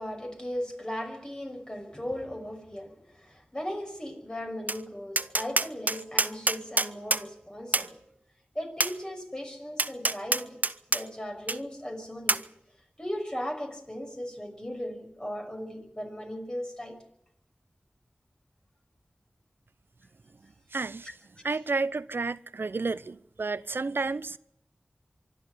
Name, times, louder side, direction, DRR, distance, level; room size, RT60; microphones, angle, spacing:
voice 1, 0.0-8.0 8.5-10.6 10.9-12.4 13.0-17.0 21.4-21.5, equal, 20° left, 6.0 m, -37 dB
Tap, 4.7-4.8 5.2-7.2 7.7-7.9 8.8-8.9 9.8-11.0 11.5-11.6 12.3-12.4, right 2 dB, 50° right, 0.9 m, -26 dB
voice 2, 20.7-21.1 21.4-24.4, right 3 dB, 85° right, 0.7 m, -31 dB
24.5 x 12.5 x 10.0 m
wide cardioid pair, 50°, 4 cm